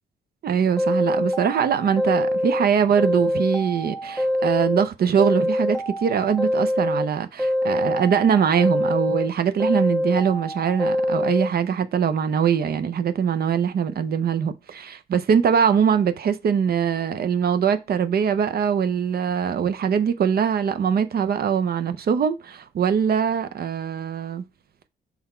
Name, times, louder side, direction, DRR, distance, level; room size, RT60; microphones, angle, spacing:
voice 1, 0.4-24.4, right 7 dB, 60° right, 0.6 m, -22 dB
sound 1, 0.8-2.6 3.0-4.9 5.2-7.1 7.4-9.3 9.6-11.5, left 1 dB, ahead, 1.4 m, -24 dB
5.8 x 4.0 x 4.3 m
cardioid pair, 105°, 18 cm